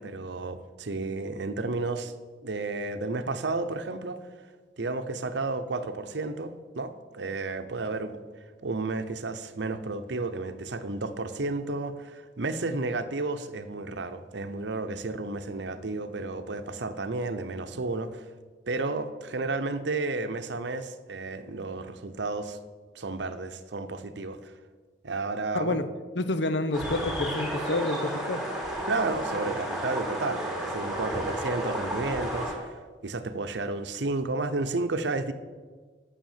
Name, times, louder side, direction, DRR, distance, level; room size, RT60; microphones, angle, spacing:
voice 1, 0.0-2.1 2.4-4.2 4.8-8.2 8.6-18.2 18.7-22.6 22.9-24.5 25.0-25.8 28.9-35.3, right 3 dB, 75° right, 9 dB, 0.8 m, -32 dB
voice 2, 25.5-25.9 26.1-28.4 29.4-29.6, left 2 dB, 75° left, 11 dB, 0.7 m, -28 dB
sound 1, 26.7-32.5, right 1 dB, 5° right, 2.5 m, -32 dB
9.1 x 6.6 x 7.3 m, 1.5 s
head